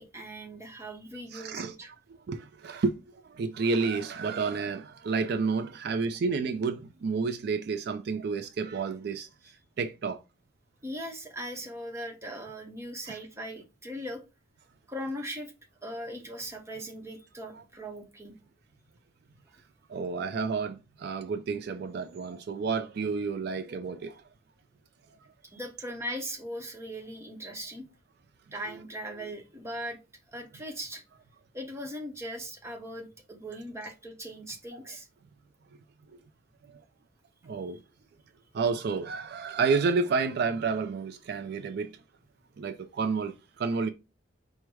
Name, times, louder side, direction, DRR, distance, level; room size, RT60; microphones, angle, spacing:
voice 1, 0.0-1.9 10.8-14.2 14.9-15.5 15.8-18.3 25.4-27.8 28.5-30.0 30.3-31.0 31.5-35.1, equal, 15° right, 0.9 m, -39 dB
voice 2, 1.3-1.7 2.3-3.0 3.3-9.3 9.8-10.2 13.1-13.2 17.6-17.7 19.9-24.2 37.4-37.8 38.5-41.9 42.6-43.9, right 4 dB, 60° right, 0.4 m, -30 dB
4.5 x 2.1 x 4.7 m
head